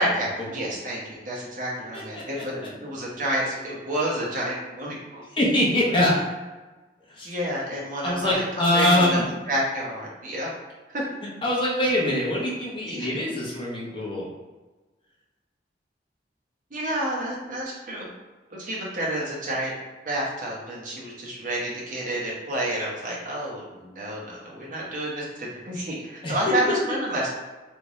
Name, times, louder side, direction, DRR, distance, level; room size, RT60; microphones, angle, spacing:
voice 1, 0.0-5.2 7.2-8.4 8.7-9.2 9.5-10.5 10.9-11.0 12.9-13.1 16.7-18.1 18.5-19.7 20.0-27.3, right 1 dB, 45° right, -4 dB, 0.9 m, -29 dB
voice 2, 1.9-2.4 5.3-6.2 7.1-7.3 8.0-9.2 11.4-14.3 26.2-26.4 26.7-26.8, left 1 dB, 30° left, -5 dB, 0.8 m, -23 dB
3.3 x 2.6 x 3.1 m, 1.2 s
head